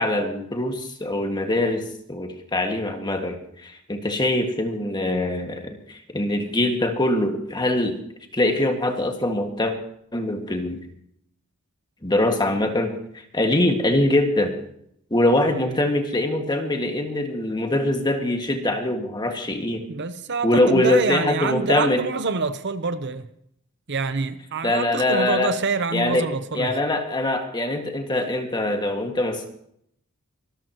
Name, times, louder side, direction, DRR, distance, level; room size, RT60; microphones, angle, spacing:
voice 1, 0.0-8.0 8.3-9.7 10.1-10.8 12.0-12.9 13.3-14.5 15.1-19.9 20.4-22.0 24.6-25.5 25.9-26.3 26.5-29.5, left 1 dB, 20° left, 1.9 m, -23 dB
voice 2, 19.9-23.3 23.9-26.8, right 4 dB, 55° right, 0.9 m, -26 dB
25.0 x 13.5 x 3.0 m
head